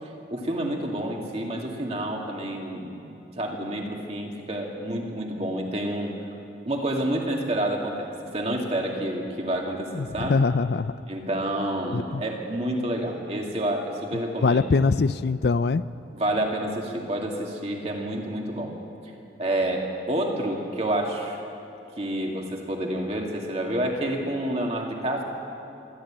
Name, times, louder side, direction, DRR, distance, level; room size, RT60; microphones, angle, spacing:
voice 1, 0.3-6.1 6.7-10.4 11.1-14.8 16.1-18.8 19.4-21.4 22.0-25.2, right 1 dB, 35° right, 0 dB, 2.5 m, -29 dB
voice 2, 9.9-10.9 11.9-12.2 14.4-15.8, left 4 dB, 60° left, 15 dB, 0.4 m, -23 dB
23.5 x 13.5 x 8.9 m, 2.8 s
head